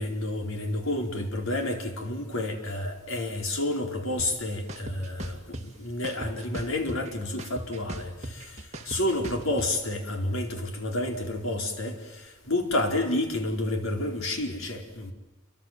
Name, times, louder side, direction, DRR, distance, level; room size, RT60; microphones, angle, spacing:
voice 1, 0.0-15.1, left 1 dB, 85° left, 3 dB, 4.7 m, -30 dB
sound 1, 4.2-4.3 4.7-5.6 6.0-7.1 7.4-9.7, right 1 dB, 35° right, 2.6 m, -37 dB
29.0 x 24.5 x 7.7 m, 1.1 s
head